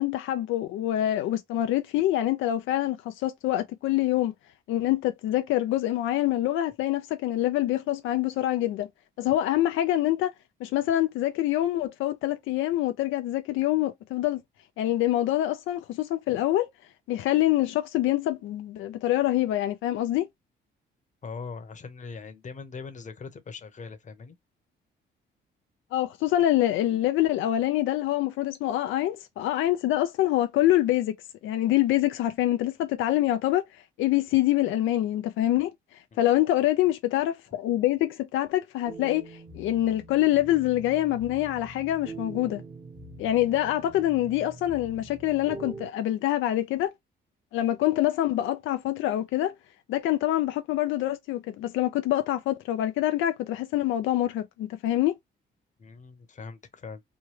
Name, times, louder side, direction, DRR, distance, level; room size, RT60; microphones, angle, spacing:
voice 1, 0.0-4.3 4.7-8.9 9.2-10.3 10.6-14.4 14.8-16.7 17.1-20.3 25.9-31.1 31.4-33.6 34.0-35.7 36.2-42.6 43.2-46.9 47.5-49.5 49.9-55.1, left 14 dB, 85° left, 0.4 m, -25 dB
voice 2, 21.2-24.3 36.1-36.2 55.8-57.0, left 5 dB, 40° left, 0.8 m, -41 dB
sound 1, 38.9-45.9, right 3 dB, 40° right, 1.1 m, -44 dB
3.1 x 2.2 x 3.1 m
cardioid pair, 90°, 20 cm